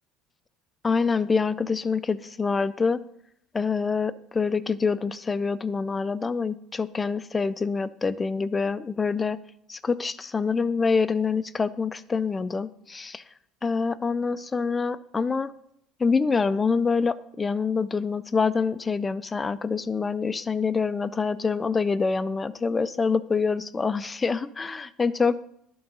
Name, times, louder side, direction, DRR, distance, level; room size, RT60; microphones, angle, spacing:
voice 1, 0.8-3.0 3.5-9.4 9.7-13.2 13.6-15.5 16.0-25.4, left 5 dB, 20° left, 15 dB, 0.4 m, -26 dB
11.5 x 3.9 x 5.4 m, 0.75 s
supercardioid pair, 100°, 0 cm